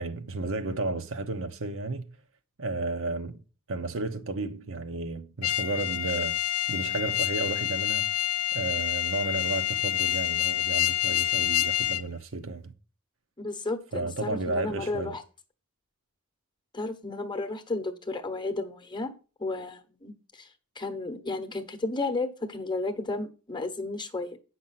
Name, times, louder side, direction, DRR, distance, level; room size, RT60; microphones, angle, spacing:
voice 1, 0.0-2.0 2.6-3.4 3.7-6.4 6.7-8.2 8.5-12.7 13.9-15.2, right 2 dB, 65° right, 1.0 m, -33 dB
sound 1, 5.4-12.0, left 13 dB, 75° left, 0.4 m, -27 dB
voice 2, 13.4-15.2 16.7-19.1 19.4-20.5 20.8-24.4, left 2 dB, 20° left, 1.0 m, -33 dB
8.9 x 6.1 x 5.7 m
head